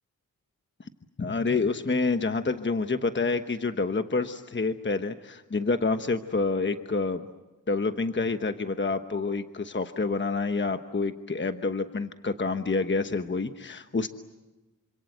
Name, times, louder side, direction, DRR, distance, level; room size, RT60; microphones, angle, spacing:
voice 1, 1.2-7.3 7.7-14.1, left 3 dB, 35° left, 8 dB, 1.1 m, -28 dB
27.5 x 26.0 x 7.9 m, 1.1 s
cardioid pair, 65°, 34 cm